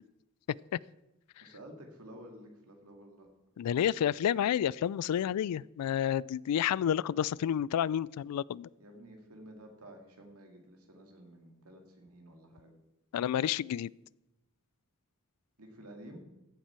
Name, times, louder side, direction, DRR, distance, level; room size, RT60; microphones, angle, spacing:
voice 1, 1.4-3.3 8.8-12.7 15.6-16.2, right 1 dB, 75° right, 3 dB, 2.3 m, -51 dB
voice 2, 3.6-8.7 13.1-13.9, left 9 dB, 90° left, 19 dB, 0.3 m, -30 dB
15.5 x 7.4 x 4.5 m, 0.95 s
head